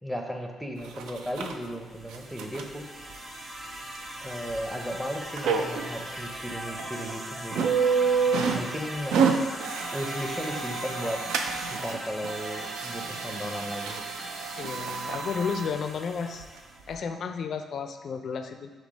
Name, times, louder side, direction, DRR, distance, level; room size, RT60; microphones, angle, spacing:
voice 1, 0.0-2.9 4.2-7.7 8.5-9.2 9.9-11.2 11.7-14.0, equal, ahead, 2 dB, 0.6 m, -35 dB
sound 1, 0.8-1.5 2.0-2.7 3.1-3.2 4.0-4.1 4.5-4.6 5.4-5.9 6.4-6.5 6.8-7.1 7.5-8.7 9.0-12.0 12.2-15.7 16.4-16.5 16.9-17.0, right 5 dB, 90° right, 0.3 m, -29 dB
sound 2, 1.8-16.9, equal, 25° right, 0.9 m, -40 dB
voice 2, 14.6-16.5 16.9-18.7, left 6 dB, 60° left, 7 dB, 0.4 m, -32 dB
5.9 x 2.0 x 4.0 m, 1.4 s
cardioid pair, 90°, 0 cm